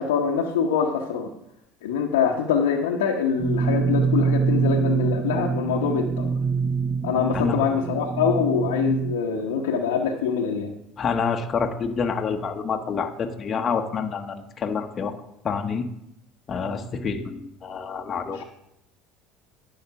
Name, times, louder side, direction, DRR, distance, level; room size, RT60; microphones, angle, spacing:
voice 1, 0.0-1.3 1.8-6.4 7.0-10.7 18.3-18.4, left 6 dB, 85° left, -1 dB, 0.9 m, -24 dB
sound 1, 3.4-9.2, right 5 dB, 35° right, 0.5 m, -25 dB
voice 2, 11.0-15.1 15.4-15.9 16.5-18.4, left 5 dB, 40° left, 5 dB, 1.1 m, -27 dB
10.5 x 5.8 x 5.8 m, 0.81 s
hypercardioid pair, 80°, 0 cm